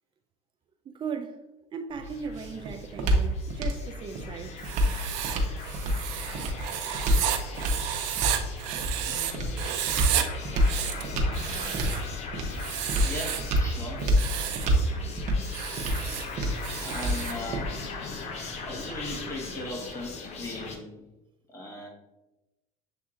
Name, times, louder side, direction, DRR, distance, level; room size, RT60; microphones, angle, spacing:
voice 1, 0.9-1.4 1.7-4.6, right 6 dB, 30° right, 0.5 m, -37 dB
sound 1, 1.9-17.9, equal, 50° right, 0.9 m, -29 dB
sound 2, 2.0-20.8, left 4 dB, 45° left, 0.8 m, -40 dB
Writing, 4.6-9.3 9.6-10.2 10.6-12.1 12.5-13.5 14.0-14.7 15.4-17.4, right 11 dB, 85° right, 0.5 m, -32 dB
voice 2, 9.0-9.6 13.1-14.1 16.8-17.7 18.6-21.0 21.5-21.9, left 1 dB, 20° left, 1.3 m, -38 dB
7.3 x 2.7 x 2.4 m
supercardioid pair, 110°, 16 cm